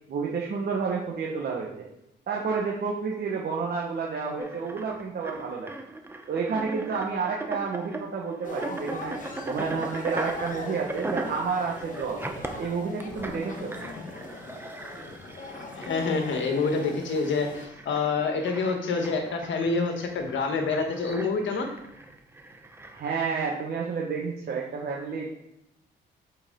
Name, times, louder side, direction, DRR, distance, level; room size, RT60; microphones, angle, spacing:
voice 1, 0.1-1.9 2.3-5.7 6.3-9.2 9.4-12.2 12.6-13.7 22.9-25.3, right 5 dB, 55° right, -2 dB, 1.3 m, -30 dB
sound 1, 4.4-23.4, right 2 dB, 10° right, 0.9 m, -39 dB
sound 2, 8.4-17.7, left 3 dB, 40° left, 1.3 m, -40 dB
voice 2, 15.8-21.7, left 4 dB, 70° left, 5 dB, 1.4 m, -27 dB
8.0 x 4.8 x 3.8 m, 0.83 s
cardioid pair, 90°, 20 cm